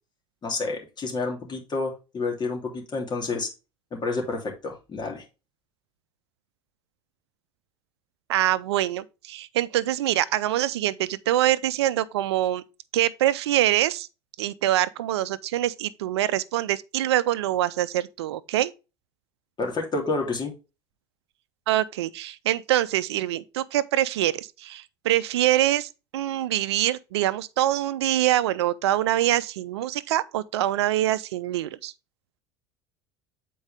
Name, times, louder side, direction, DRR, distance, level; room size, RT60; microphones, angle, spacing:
voice 1, 0.4-3.5 3.9-5.2 19.6-20.5, left 3 dB, 30° left, 3.0 m, -29 dB
voice 2, 8.3-12.6 12.9-14.1 14.4-18.7 21.7-31.9, right 13 dB, 80° right, 0.5 m, -24 dB
7.9 x 4.6 x 3.5 m
hypercardioid pair, 80°, 14 cm